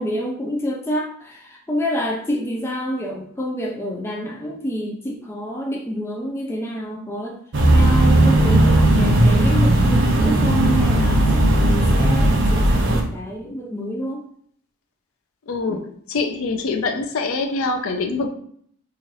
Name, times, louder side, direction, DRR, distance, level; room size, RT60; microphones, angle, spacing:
voice 1, 0.0-7.4 7.7-8.6 9.0-14.2 15.7-15.8, equal, 10° left, -1 dB, 0.3 m, -28 dB
sound 1, 7.5-13.0, right 1 dB, 55° right, 0.5 m, -16 dB
voice 2, 15.5-18.3, left 3 dB, 75° left, 5 dB, 0.4 m, -24 dB
2.9 x 2.4 x 3.0 m, 0.62 s
head